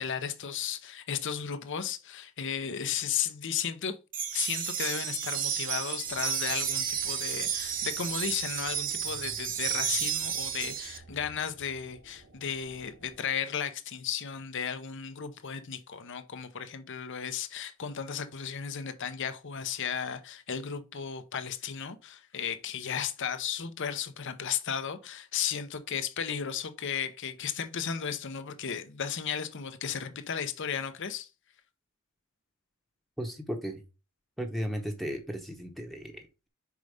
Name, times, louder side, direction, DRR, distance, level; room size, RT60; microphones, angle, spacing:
voice 1, 0.0-4.0 4.3-31.3, left 7 dB, 60° left, 0.8 m, -34 dB
sound 1, 4.1-11.0, right 8 dB, 40° right, 0.9 m, -32 dB
sound 2, 6.0-13.2, right 1 dB, 90° right, 1.6 m, -54 dB
voice 2, 33.2-33.8 34.4-36.5, equal, ahead, 0.9 m, -35 dB
5.3 x 4.7 x 5.0 m
head